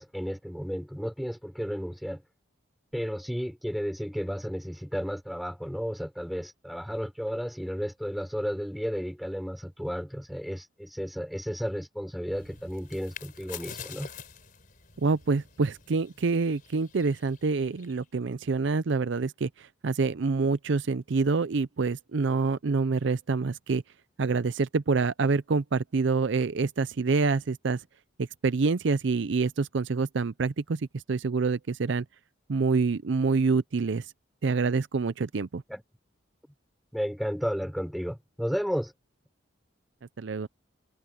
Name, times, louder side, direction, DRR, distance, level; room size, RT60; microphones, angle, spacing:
voice 1, 0.0-2.2 2.9-14.1 35.7-35.8 36.9-38.9, equal, ahead, 4.0 m, -33 dB
sound 1, 12.3-18.0, left 7 dB, 45° left, 4.1 m, -47 dB
voice 2, 15.0-23.8 24.2-27.8 28.2-32.0 32.5-34.1 34.4-35.6 40.2-40.5, right 4 dB, 60° right, 0.5 m, -26 dB
head